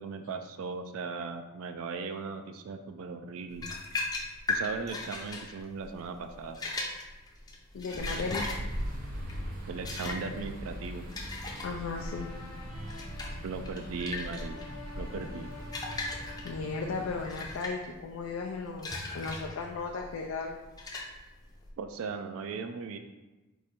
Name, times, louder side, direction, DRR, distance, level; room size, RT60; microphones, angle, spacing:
voice 1, 0.0-3.7 4.5-6.6 9.7-11.1 13.4-14.6 15.0-15.6 21.8-23.0, right 4 dB, 75° right, 7 dB, 0.3 m, -38 dB
sound 1, 3.5-21.7, left 2 dB, 20° left, 0.5 m, -39 dB
voice 2, 7.7-8.5 11.6-12.3 16.4-20.6, left 4 dB, 80° left, 0 dB, 0.4 m, -35 dB
sound 2, 7.9-17.5, equal, 40° right, 0.7 m, -40 dB
sound 3, 11.9-17.2, left 4 dB, 45° left, 1.0 m, -48 dB
4.7 x 2.6 x 4.2 m, 1.1 s
head